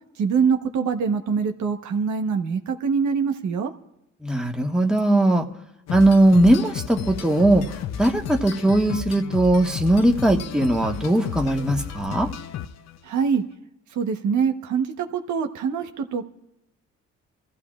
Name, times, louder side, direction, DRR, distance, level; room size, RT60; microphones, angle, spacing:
voice 1, 0.2-3.7 13.0-13.4 13.9-16.2, right 6 dB, 70° right, 5 dB, 1.1 m, -24 dB
voice 2, 4.2-5.5 5.9-7.7 8.0-12.3, right 1 dB, ahead, 1 dB, 1.4 m, -19 dB
sound 1, 5.9-13.0, left 9 dB, 60° left, 0.7 m, -33 dB
24.5 x 14.5 x 2.4 m, 0.85 s
cardioid pair, 90°, 30 cm